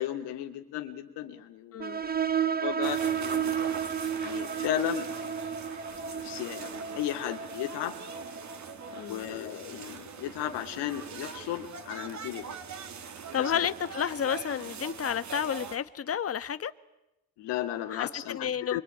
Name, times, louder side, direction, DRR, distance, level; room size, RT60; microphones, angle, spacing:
voice 1, 0.0-2.1 2.6-3.6 4.2-5.1 5.6-5.7 6.1-8.0 9.1-12.6 13.2-13.6 17.4-18.8, left 12 dB, 85° left, 2.9 m, -35 dB
sound 1, 1.8-9.1, right 8 dB, 25° right, 1.0 m, -32 dB
sound 2, 2.8-15.8, right 6 dB, 45° right, 2.7 m, -42 dB
voice 2, 8.9-9.2 13.3-16.7 17.9-18.8, left 8 dB, 35° left, 1.3 m, -31 dB
25.5 x 24.5 x 9.2 m
cardioid pair, 115°, 40 cm